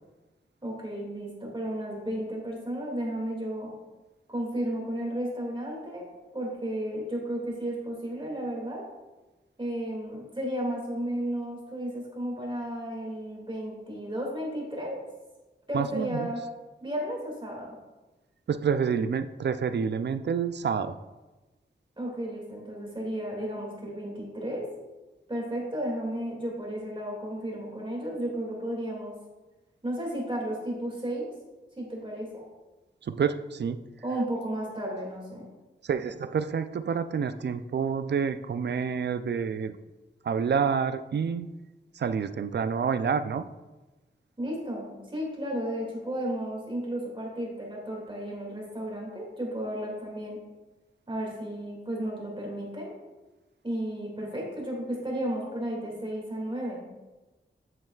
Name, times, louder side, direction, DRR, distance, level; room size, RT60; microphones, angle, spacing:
voice 1, 0.6-3.7 4.3-6.1 6.3-8.9 9.6-15.0 15.7-16.4 16.8-17.7 22.0-24.7 25.3-29.2 29.8-31.3 31.8-32.4 34.0-35.5 44.4-50.4 51.1-52.9 53.6-56.8, right 1 dB, 25° right, -2 dB, 2.3 m, -33 dB
voice 2, 15.7-16.3 18.5-21.0 33.0-33.8 35.8-39.8 40.2-41.6 41.9-43.5, right 6 dB, 60° right, 12 dB, 0.4 m, -28 dB
7.9 x 7.5 x 2.4 m, 1.1 s
wide cardioid pair, 90°, 20 cm